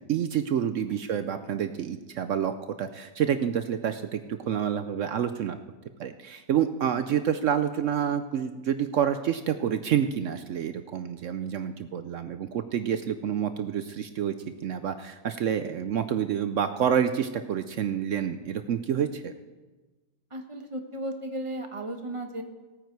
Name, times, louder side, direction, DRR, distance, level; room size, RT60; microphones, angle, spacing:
voice 1, 0.1-5.6 6.0-14.3 14.6-19.3, right 9 dB, 75° right, 10 dB, 0.7 m, -28 dB
voice 2, 20.3-22.4, right 1 dB, 20° right, 4 dB, 1.0 m, -35 dB
17.5 x 9.1 x 4.7 m, 1.2 s
omnidirectional pair, 1.9 m